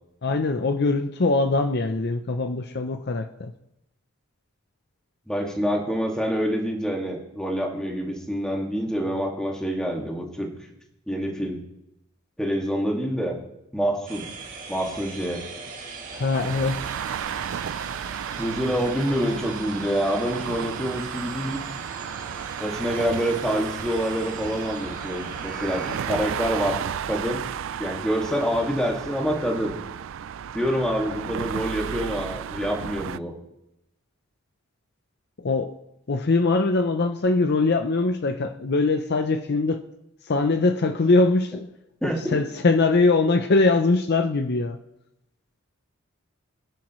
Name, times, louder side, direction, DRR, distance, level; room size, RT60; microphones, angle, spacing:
voice 1, 0.2-3.5 16.1-16.9 35.4-35.7 36.1-39.8 40.3-41.7 42.0-44.8, left 3 dB, 50° left, 0.6 m, -22 dB
voice 2, 5.3-10.5 11.1-11.6 12.4-13.4 13.7-14.3 14.7-15.4 18.4-21.6 22.6-26.8 27.1-27.4 27.8-29.7 30.5-33.3 42.0-42.4, equal, 5° left, 2.1 m, -26 dB
sound 1, 14.1-26.1, right 4 dB, 40° right, 2.1 m, -40 dB
sound 2, 16.3-33.2, right 8 dB, 65° right, 0.4 m, -33 dB
24.5 x 10.5 x 3.1 m
head